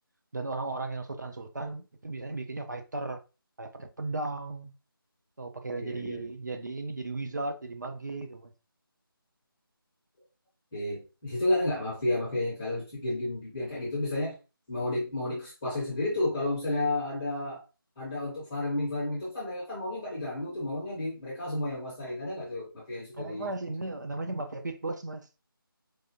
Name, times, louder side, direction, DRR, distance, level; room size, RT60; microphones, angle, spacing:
voice 1, 0.3-3.2 3.6-4.7 5.4-8.5 23.1-25.3, right 2 dB, 50° right, 0.5 m, -36 dB
voice 2, 5.7-6.3 10.7-14.4 14.7-17.6 18.0-23.5, left 2 dB, 5° left, 0.5 m, -31 dB
4.8 x 2.5 x 2.7 m
figure-of-eight pair, 170°, 12 cm